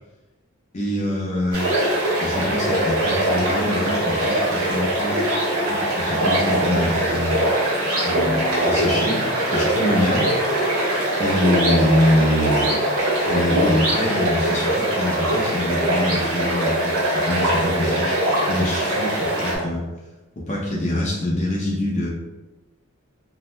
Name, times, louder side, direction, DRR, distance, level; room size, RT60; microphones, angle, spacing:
voice 1, 0.7-1.7 2.2-5.2 5.7-7.4 8.0-9.2 9.5-10.3 11.2-12.8 13.3-19.8 20.5-22.1, left 1 dB, 35° left, -5 dB, 0.5 m, -24 dB
sound 1, 1.5-19.6, right 1 dB, 85° right, 0.9 m, -22 dB
sound 2, 8.1-11.5, left 2 dB, 45° right, 0.8 m, -38 dB
2.7 x 2.1 x 3.1 m, 1.1 s
head